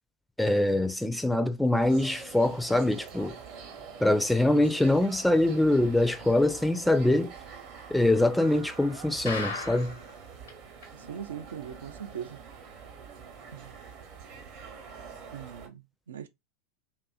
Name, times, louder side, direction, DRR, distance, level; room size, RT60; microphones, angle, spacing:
voice 1, 0.4-3.3 4.0-7.3 7.9-9.9, left 1 dB, 5° left, 0.4 m, -24 dB
sound 1, 1.8-15.7, right 6 dB, 50° right, 0.8 m, -46 dB
sound 2, 9.3-10.1 10.5-10.6 10.8-10.9 11.4-11.5, left 4 dB, 80° left, 0.8 m, -35 dB
voice 2, 10.9-12.4 13.5-13.8 15.3-16.3, right 8 dB, 75° right, 0.3 m, -40 dB
2.6 x 2.4 x 2.2 m
figure-of-eight pair, 85°, 0 cm